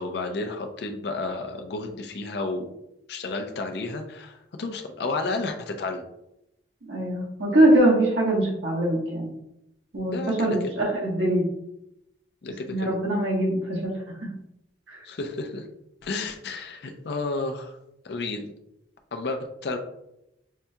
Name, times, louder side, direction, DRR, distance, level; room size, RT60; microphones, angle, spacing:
voice 1, 0.0-2.6 3.1-6.0 10.1-10.6 12.4-12.9 15.0-15.7 16.0-17.8 18.0-18.5 19.1-19.8, left 3 dB, 60° left, 5 dB, 0.4 m, -31 dB
voice 2, 6.9-9.3 9.9-11.4 12.7-13.9 14.2-14.3 14.9-15.0, right 1 dB, 85° right, -4 dB, 1.3 m, -22 dB
5.5 x 2.7 x 2.3 m, 0.84 s
head